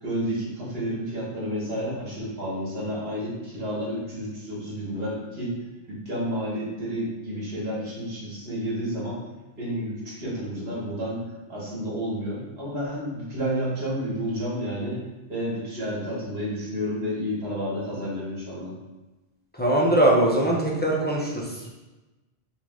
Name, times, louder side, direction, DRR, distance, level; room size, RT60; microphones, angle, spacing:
voice 1, 0.0-5.5 5.9-9.2 9.6-11.2 11.5-15.0 15.3-18.7, equal, 75° right, -6 dB, 1.6 m, -30 dB
voice 2, 19.5-21.7, right 1 dB, 15° left, -4 dB, 0.4 m, -22 dB
4.9 x 2.3 x 3.6 m, 1.1 s
omnidirectional pair, 1.0 m